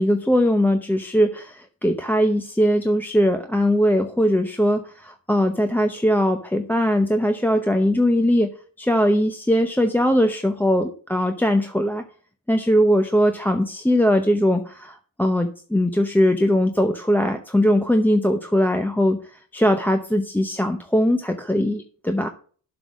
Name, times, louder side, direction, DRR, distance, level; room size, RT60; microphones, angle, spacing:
voice 1, 0.0-8.5 8.8-12.0 12.5-22.3, equal, 5° left, 5 dB, 0.8 m, -20 dB
7.7 x 5.6 x 6.1 m, 0.43 s
cardioid pair, 80°, 43 cm